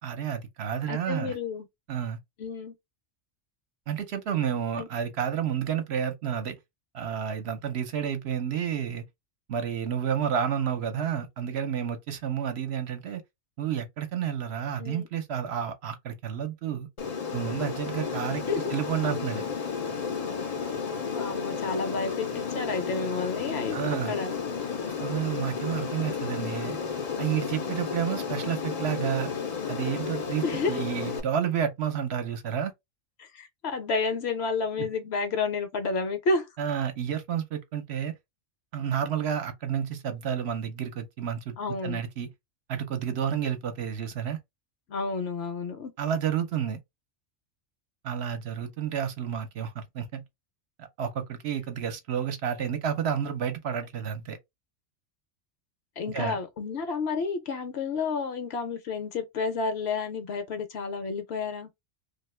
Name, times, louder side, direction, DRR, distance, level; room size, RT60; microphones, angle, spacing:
voice 1, 0.0-1.3 1.9-2.2 3.9-6.6 6.9-9.0 9.5-13.2 13.6-16.9 17.3-19.4 23.7-24.2 25.0-26.8 27.2-29.3 29.7-32.7 34.8-34.9 36.6-38.2 38.7-42.3 42.7-44.4 46.0-46.8 48.0-50.2 50.8-54.4 56.1-56.4, right 8 dB, 65° right, 0.9 m, -30 dB
voice 2, 0.9-1.7 2.4-2.7 4.8-4.9 14.8-15.1 18.5-18.7 21.1-23.8 24.1-24.4 30.4-30.8 33.2-36.5 41.6-42.0 44.9-45.9 56.0-61.7, left 4 dB, 65° left, 0.8 m, -30 dB
Aircraft, 17.0-31.2, left 6 dB, 50° left, 0.5 m, -32 dB
2.7 x 2.3 x 3.2 m
omnidirectional pair, 1.3 m